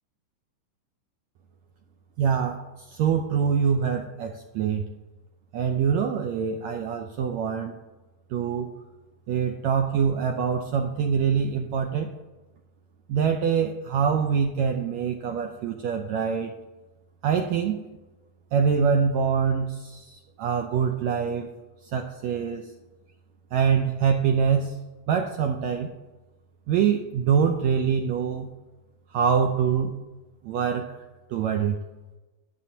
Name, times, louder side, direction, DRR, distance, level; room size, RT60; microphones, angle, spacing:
voice 1, 2.2-4.9 5.5-7.7 8.3-8.7 9.3-12.1 13.1-16.5 17.2-17.8 18.5-20.1 20.4-21.5 21.9-22.6 23.5-24.8 25.1-25.9 26.7-28.5 29.1-29.9 30.4-30.9 31.3-31.8, right 7 dB, 80° right, 4 dB, 1.6 m, -24 dB
18.0 x 6.4 x 2.8 m, 1.1 s
omnidirectional pair, 3.7 m